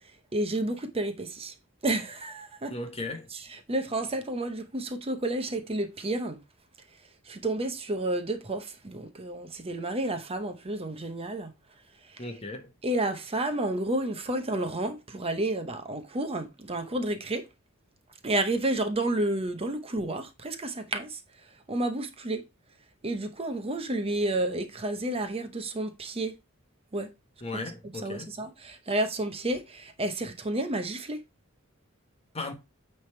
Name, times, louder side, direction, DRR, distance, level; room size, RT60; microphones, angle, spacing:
voice 1, 0.3-1.5 1.8-2.7 3.3-6.4 7.3-11.5 12.1-12.3 12.8-17.5 18.2-21.2 21.7-22.4 23.0-26.3 26.9-27.1 27.8-31.2, right 1 dB, 25° right, 0.8 m, -31 dB
voice 2, 2.7-3.3 12.2-12.7 27.4-28.3 32.3-32.5, left 2 dB, 30° left, 1.2 m, -36 dB
9.1 x 3.4 x 4.4 m
head